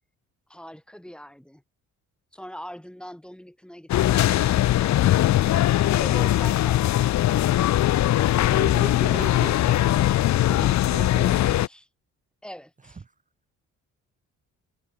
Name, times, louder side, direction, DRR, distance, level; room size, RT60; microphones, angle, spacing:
voice 1, 0.5-1.6 2.3-5.3 11.2-11.9 12.4-13.0, equal, 5° left, 3.0 m, -43 dB
sound 1, 3.9-11.7, left 13 dB, 65° left, 0.8 m, -20 dB
voice 2, 8.5-9.8 10.5-11.4, right 5 dB, 25° right, 1.4 m, -37 dB
cardioid pair, 90°, 30 cm